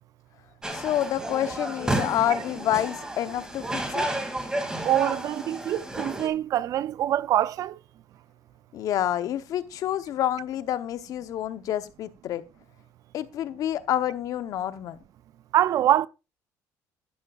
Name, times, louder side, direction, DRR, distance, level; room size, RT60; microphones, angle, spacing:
sound 1, 0.6-6.3, right 1 dB, 10° right, 2.6 m, -31 dB
voice 1, 0.7-4.1 8.7-12.4 13.1-15.0, left 11 dB, 60° left, 0.9 m, -28 dB
voice 2, 4.8-7.8 15.5-16.1, right 12 dB, 60° right, 0.5 m, -24 dB
12.0 x 12.0 x 2.5 m
cardioid pair, 110°, 7 cm